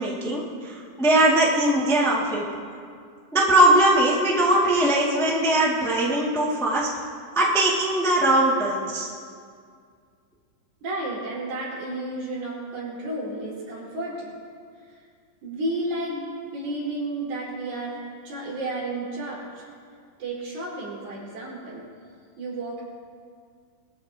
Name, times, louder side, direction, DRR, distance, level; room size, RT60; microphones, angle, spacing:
voice 1, 0.0-2.4 3.3-6.9 7.3-9.1, right 1 dB, ahead, -5 dB, 1.2 m, -20 dB
voice 2, 10.8-14.3 14.9-15.0 15.4-16.3 16.5-19.6 20.2-21.9 22.4-22.8, right 2 dB, 80° right, -7 dB, 6.5 m, -32 dB
22.5 x 14.5 x 2.9 m, 2.2 s
omnidirectional pair, 4.2 m